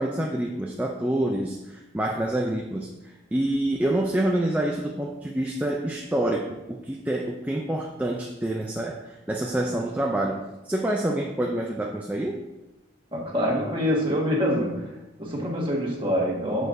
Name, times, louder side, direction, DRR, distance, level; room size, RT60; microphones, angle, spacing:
voice 1, 0.0-12.4, right 1 dB, 10° right, 0 dB, 0.4 m, -27 dB
voice 2, 13.1-14.9 15.2-16.7, equal, 25° right, -3 dB, 1.6 m, -25 dB
8.7 x 6.4 x 2.7 m, 1.0 s
head